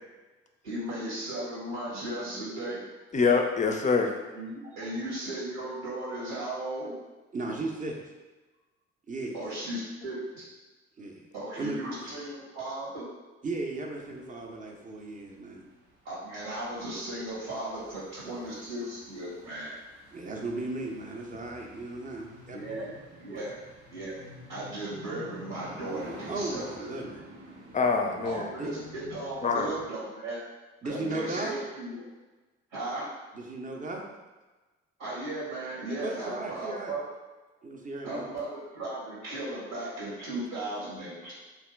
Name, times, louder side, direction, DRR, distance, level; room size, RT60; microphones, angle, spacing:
voice 1, 0.6-2.8 4.3-6.9 9.3-10.4 11.3-13.0 16.0-19.8 22.5-23.5 23.9-26.9 28.2-30.4 30.8-32.0 32.7-33.1 35.0-37.0 38.0-41.3, right 1 dB, 70° right, -7 dB, 1.1 m, -36 dB
voice 2, 3.1-4.1 27.7-28.5 29.4-29.7, left 5 dB, 20° left, 3 dB, 0.4 m, -25 dB
voice 3, 7.3-8.0 9.1-9.4 11.0-11.3 11.6-12.1 13.4-15.6 20.1-22.9 23.3-23.4 26.3-27.2 28.6-28.7 29.5-29.6 30.8-31.6 33.3-34.1 36.0-36.9 37.6-38.2, right 2 dB, 25° right, 1 dB, 0.6 m, -36 dB
sound 1, 14.0-29.9, equal, 85° right, 0.8 m, -49 dB
2.8 x 2.4 x 3.3 m, 1.2 s
figure-of-eight pair, 45°, 35 cm